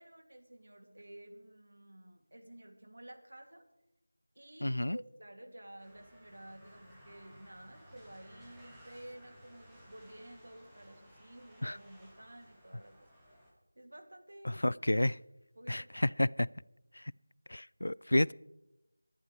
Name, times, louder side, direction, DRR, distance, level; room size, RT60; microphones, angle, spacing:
voice 1, 0.0-3.6 4.3-12.9 13.8-14.8 15.6-15.9, right 1 dB, 70° right, 4 dB, 2.5 m, -52 dB
voice 2, 4.6-5.0 11.6-11.8 14.4-15.2 15.7-16.5 17.0-17.1 17.5-18.3, left 1 dB, 80° left, 23 dB, 0.3 m, -30 dB
sound 1, 5.8-13.5, equal, ahead, 1.4 m, -58 dB
21.5 x 11.0 x 3.3 m, 0.94 s
figure-of-eight pair, 175°, 0 cm